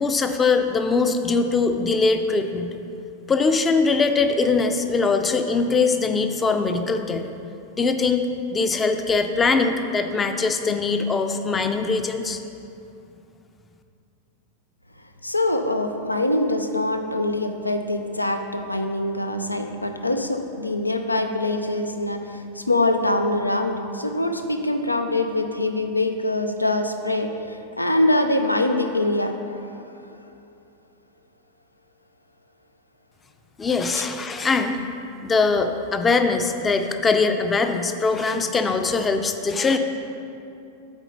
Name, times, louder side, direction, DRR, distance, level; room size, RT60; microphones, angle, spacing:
voice 1, 0.0-2.7 3.3-7.2 7.8-8.3 8.5-12.4 33.6-34.8 35.2-39.8, left 4 dB, 15° left, 7 dB, 0.5 m, -22 dB
voice 2, 15.2-29.9, left 1 dB, 85° left, 6 dB, 0.4 m, -24 dB
8.1 x 4.3 x 5.3 m, 2.7 s
figure-of-eight pair, 90°, 0 cm